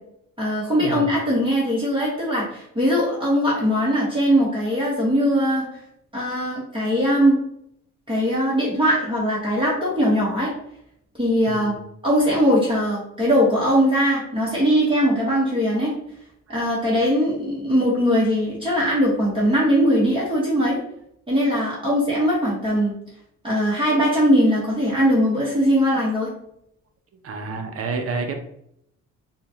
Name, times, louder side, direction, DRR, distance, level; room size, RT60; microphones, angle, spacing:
voice 1, 0.4-5.7 6.1-7.4 8.1-10.5 11.2-11.8 12.0-15.9 16.5-20.8 21.3-22.9 23.4-26.3, equal, 15° right, -6 dB, 1.3 m, -20 dB
voice 2, 27.2-28.3, right 4 dB, 50° right, 5 dB, 0.7 m, -29 dB
5.0 x 2.4 x 2.9 m, 0.74 s
cardioid pair, 90°, 30 cm